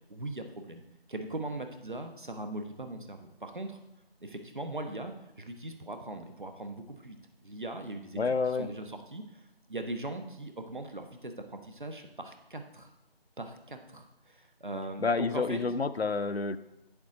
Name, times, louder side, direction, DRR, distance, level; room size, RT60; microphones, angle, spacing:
voice 1, 0.1-3.8 4.2-12.9 13.4-15.6, right 2 dB, 55° right, 6 dB, 1.0 m, -40 dB
voice 2, 8.2-8.7 15.0-16.6, left 4 dB, 80° left, 12 dB, 0.6 m, -29 dB
8.9 x 7.2 x 3.9 m, 0.90 s
figure-of-eight pair, 175°, 31 cm